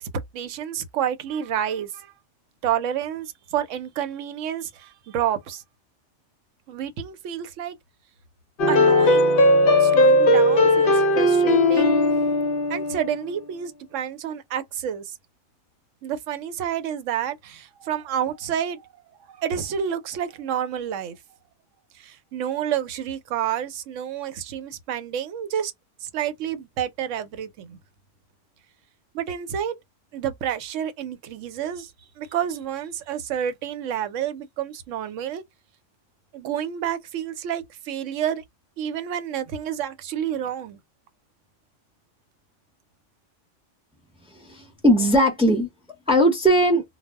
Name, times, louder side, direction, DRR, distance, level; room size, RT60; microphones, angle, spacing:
voice 1, 0.0-2.1 2.6-5.6 6.7-7.7 8.7-9.3 9.8-12.0 12.7-15.1 16.0-18.9 19.3-21.2 22.0-25.7 26.0-27.8 29.1-29.8 30.1-31.9 32.2-35.4 36.3-38.4 38.8-40.8, right 9 dB, 85° right, 0.9 m, -29 dB
sound 1, 8.6-13.2, left 1 dB, 60° left, 0.6 m, -18 dB
voice 2, 44.3-45.7 46.1-46.8, equal, 5° right, 0.6 m, -19 dB
2.2 x 2.0 x 3.3 m
omnidirectional pair, 1.3 m